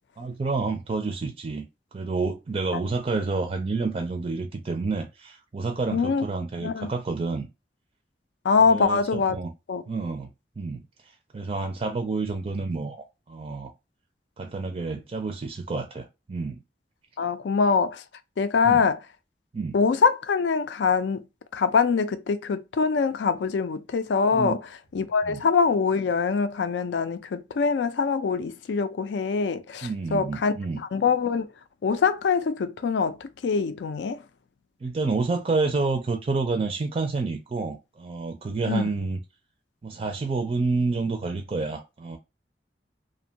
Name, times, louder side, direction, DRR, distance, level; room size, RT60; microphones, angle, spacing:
voice 1, 0.2-1.6 1.9-7.5 8.7-9.5 9.9-13.7 14.4-16.6 18.7-18.8 19.5-19.7 24.3-24.5 25.3-25.4 29.8-30.8 34.8-39.2 39.8-42.2, right 3 dB, 35° right, 0.4 m, -29 dB
voice 2, 5.9-6.3 6.6-6.9 8.4-9.4 9.7-9.8 17.2-18.0 18.4-19.0 19.7-21.2 21.5-24.6 24.9-31.5 31.8-34.3 38.7-38.9, left 5 dB, 80° left, 0.4 m, -24 dB
2.5 x 2.2 x 2.7 m
head